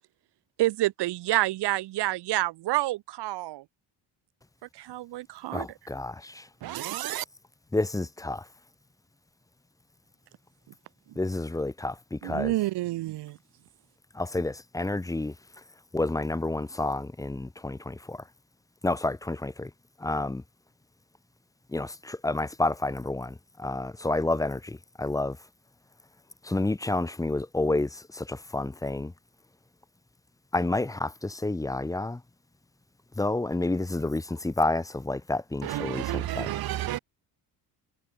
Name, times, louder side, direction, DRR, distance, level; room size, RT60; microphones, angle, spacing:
voice 1, 0.6-3.6 4.7-5.7 12.2-13.4, right 17 dB, 85° right, 4.8 m, -28 dB
voice 2, 5.5-6.5 7.7-8.4 11.2-12.5 14.1-15.3 15.9-18.2 18.8-19.7 20.0-20.4 21.7-25.4 26.4-29.1 30.5-32.2 33.2-36.5, left 2 dB, 10° left, 1.3 m, -29 dB
voice 3, 6.6-7.3 35.6-37.0, right 14 dB, 65° right, 2.2 m, -31 dB
cardioid pair, 145°, 39 cm